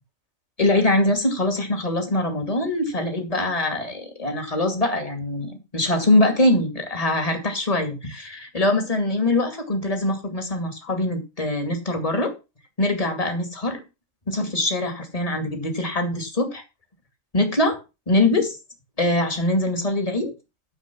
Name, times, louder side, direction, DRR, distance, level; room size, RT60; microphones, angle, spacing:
voice 1, 0.6-12.3 12.8-13.8 14.3-16.6 17.3-17.8 18.1-18.6 19.0-20.3, left 1 dB, 25° left, 5 dB, 2.5 m, -23 dB
10.0 x 7.1 x 6.1 m, 0.28 s
omnidirectional pair, 1.4 m